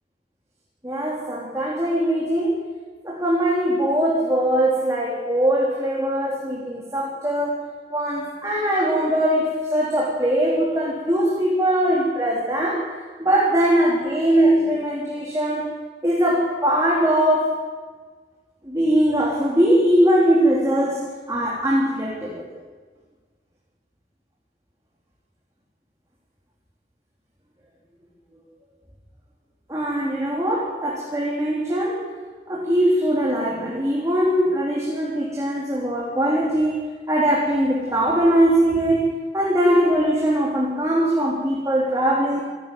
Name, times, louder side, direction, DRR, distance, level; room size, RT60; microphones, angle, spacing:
voice 1, 0.8-2.5 3.0-7.6 7.9-12.8 13.2-15.7 16.0-17.5 18.6-22.4 29.7-32.1 32.5-39.0 39.3-42.4, right 1 dB, 20° right, -4 dB, 3.5 m, -21 dB
27.0 x 12.5 x 9.3 m, 1.5 s
head